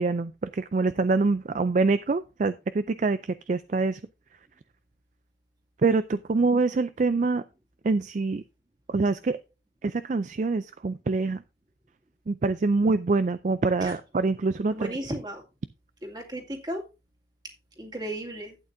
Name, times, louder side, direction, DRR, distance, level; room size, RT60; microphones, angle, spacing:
voice 1, 0.0-4.0 5.8-7.4 7.8-8.4 8.9-9.4 9.8-11.4 12.3-14.7, right 3 dB, 45° right, 13 dB, 0.4 m, -25 dB
voice 2, 14.7-15.4 16.0-16.8 17.8-18.6, right 1 dB, 25° right, 1 dB, 2.2 m, -35 dB
12.0 x 8.9 x 2.6 m, 0.28 s
head